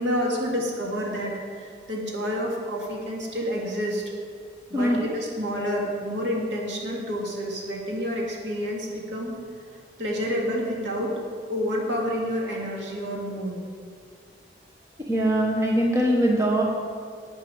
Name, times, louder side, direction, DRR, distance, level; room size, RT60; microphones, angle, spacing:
voice 1, 0.0-4.0 4.7-9.3 10.0-11.1 11.5-13.6, equal, 85° right, -2 dB, 2.2 m, -29 dB
voice 2, 15.1-16.6, right 1 dB, 15° right, -1 dB, 1.1 m, -22 dB
11.0 x 8.3 x 4.8 m, 2.1 s
head